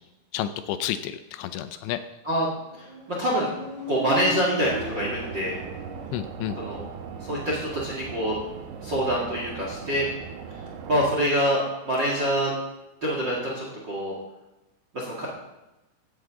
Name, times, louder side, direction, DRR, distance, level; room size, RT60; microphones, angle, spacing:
voice 1, 0.3-2.0 6.1-6.6, left 11 dB, 80° left, 11 dB, 2.7 m, -30 dB
Motorcycle, 2.7-6.3, right 2 dB, 10° right, 4.0 m, -37 dB
voice 2, 3.2-3.5 3.9-5.5 6.6-6.8 7.2-8.3 8.8-10.1 10.9-11.6 11.8-12.5 13.0-14.1 14.9-15.3, equal, 45° right, -3 dB, 1.6 m, -25 dB
sound 1, 4.6-11.2, right 6 dB, 75° right, 3.4 m, -39 dB
16.0 x 11.0 x 3.6 m, 0.98 s
omnidirectional pair, 5.3 m